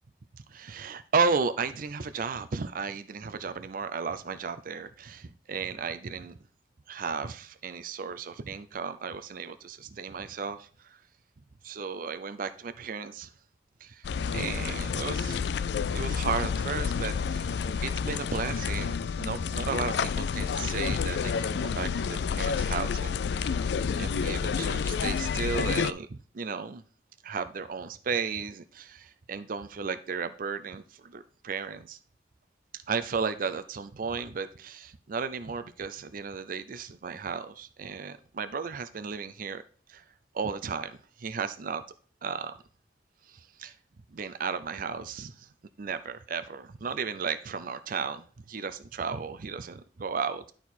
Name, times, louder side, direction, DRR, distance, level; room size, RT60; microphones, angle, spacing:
voice 1, 0.3-6.4 6.9-11.0 11.6-13.3 13.8-14.1 14.3-15.4 15.9-23.7 24.0-26.8 27.2-32.0 32.9-39.6 39.9-40.0 40.3-41.8 42.2-42.6 43.3-43.7 44.1-45.5 45.8-50.4, right 5 dB, 50° right, 11 dB, 0.5 m, -34 dB
sound 1, 14.0-25.9, left 6 dB, 70° left, 0.4 m, -29 dB
11.5 x 4.5 x 4.1 m, 0.43 s
head